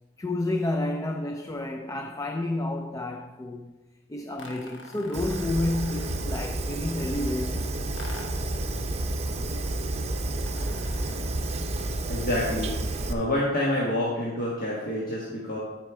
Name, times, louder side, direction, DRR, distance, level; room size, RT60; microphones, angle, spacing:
voice 1, 0.2-3.8 4.1-7.8, left 2 dB, 15° left, 0.4 m, -30 dB
sound 1, 4.4-6.4 8.0-8.6 10.4-11.4, left 2 dB, 80° left, 1.1 m, -46 dB
Fire, 5.1-13.1, right 2 dB, 35° right, 0.7 m, -30 dB
voice 2, 12.1-12.8 13.1-15.6, left 1 dB, 50° left, 1.4 m, -27 dB
11.5 x 4.7 x 4.7 m
head